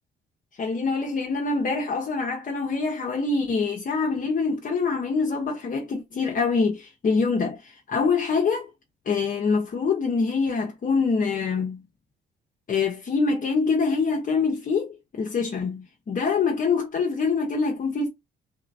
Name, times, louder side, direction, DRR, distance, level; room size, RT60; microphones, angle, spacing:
voice 1, 0.6-8.7 9.1-11.8 12.7-18.1, left 4 dB, 45° left, 0.9 m, -25 dB
3.3 x 2.8 x 2.6 m
cardioid pair, 90°, 20 cm